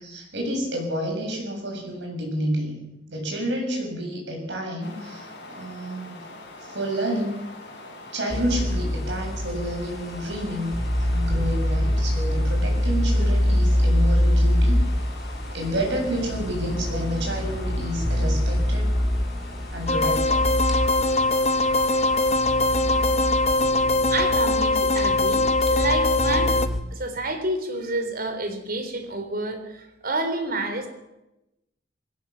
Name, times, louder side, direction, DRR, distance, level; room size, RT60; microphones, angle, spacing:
voice 1, 0.0-2.8 3.1-6.2 6.6-7.4 8.1-14.8 15.5-18.9 19.7-20.4, equal, 70° right, 1 dB, 7.7 m, -29 dB
sound 1, 4.8-23.6, left 2 dB, 65° left, 7.2 m, -42 dB
sound 2, 8.3-26.8, equal, ahead, 3.1 m, -25 dB
sound 3, 19.9-26.7, left 2 dB, 35° left, 0.9 m, -22 dB
voice 2, 24.1-26.6 26.9-30.9, right 2 dB, 55° right, 7 dB, 3.7 m, -29 dB
20.5 x 17.5 x 7.4 m, 0.92 s
head